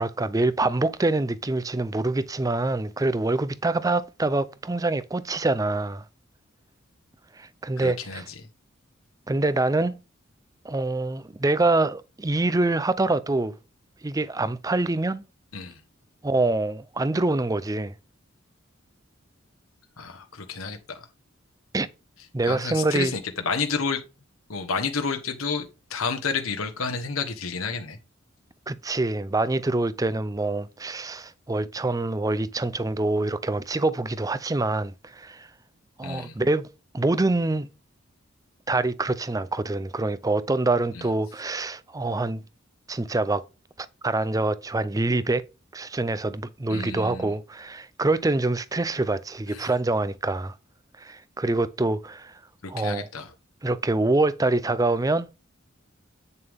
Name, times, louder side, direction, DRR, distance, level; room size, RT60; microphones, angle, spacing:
voice 1, 0.0-6.0 7.4-8.2 9.3-9.9 10.6-13.5 14.0-15.2 16.2-17.9 21.7-21.9 22.3-23.1 28.7-35.5 36.0-36.7 36.9-37.7 38.7-42.4 42.9-43.4 43.8-45.5 45.7-50.5 51.0-52.3 52.7-53.1 53.6-55.3, right 2 dB, 15° right, 0.5 m, -25 dB
voice 2, 7.8-8.3 15.5-15.8 20.0-21.0 22.4-24.0 24.5-28.0 36.0-36.3 40.9-41.1 46.7-47.3 49.5-49.7 52.6-53.3, left 4 dB, 85° left, 1.2 m, -30 dB
8.8 x 6.7 x 3.6 m
head